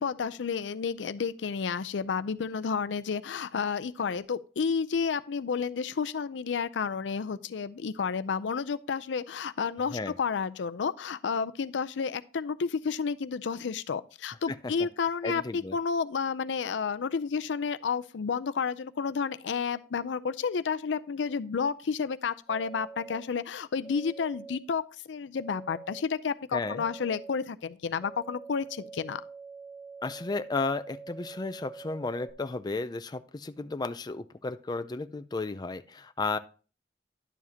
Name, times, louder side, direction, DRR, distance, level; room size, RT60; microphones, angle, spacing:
voice 1, 0.0-24.8 25.1-29.2, left 5 dB, 80° left, 0.5 m, -31 dB
voice 2, 15.2-15.8 26.5-26.8 30.0-36.4, left 3 dB, 25° left, 0.4 m, -33 dB
sound 1, 22.5-23.2 23.8-24.6 25.4-26.0 26.6-27.4 28.0-32.3, right 4 dB, 5° left, 1.2 m, -45 dB
11.0 x 7.2 x 2.8 m
head